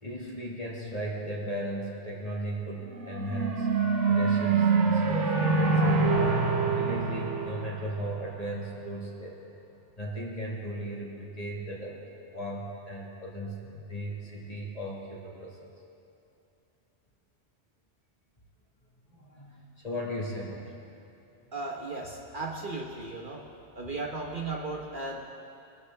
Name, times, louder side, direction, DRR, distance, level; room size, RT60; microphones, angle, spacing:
voice 1, 0.0-3.7 4.1-6.2 6.7-9.4 10.0-12.0 12.3-15.6 19.1-20.7, equal, 35° left, -4 dB, 2.2 m, -36 dB
sound 1, 3.0-8.5, right 4 dB, 80° right, 1.4 m, -25 dB
voice 2, 21.5-23.5 23.7-25.2, right 3 dB, 45° right, 0 dB, 1.1 m, -36 dB
21.5 x 13.0 x 3.5 m, 2.7 s
omnidirectional pair, 1.2 m